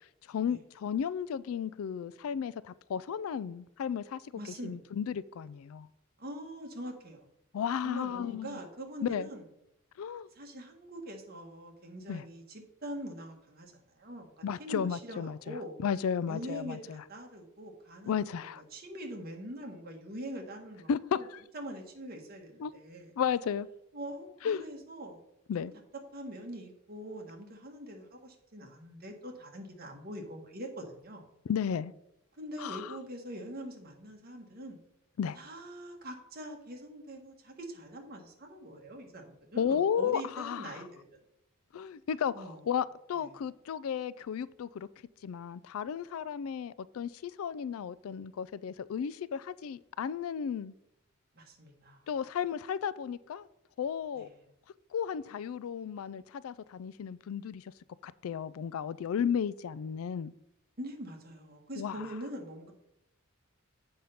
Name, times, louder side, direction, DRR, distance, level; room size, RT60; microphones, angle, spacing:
voice 1, 0.3-4.2 4.6-5.9 7.5-8.6 9.0-9.3 10.0-10.3 12.1-12.2 14.4-15.6 15.8-17.0 18.1-18.6 20.9-21.4 22.6-22.7 23.2-23.7 24.4-24.6 25.5-25.7 31.5-31.9 32.6-33.0 35.2-35.4 39.6-40.8 41.7-44.9 45.2-50.7 52.1-53.5 53.8-54.3 54.9-57.6 58.0-60.3 61.8-62.0, left 7 dB, 80° left, 0.3 m, -34 dB
voice 2, 4.3-4.8 6.2-7.3 7.8-9.4 10.3-14.3 14.6-15.8 16.3-21.3 21.5-23.1 23.9-25.2 25.6-25.7 26.1-31.2 32.4-34.8 35.4-41.0 42.3-42.6 43.2-43.3 51.3-52.1 54.1-54.3 59.2-59.3 60.8-62.7, equal, 45° right, 1.6 m, -43 dB
7.7 x 5.4 x 5.8 m
head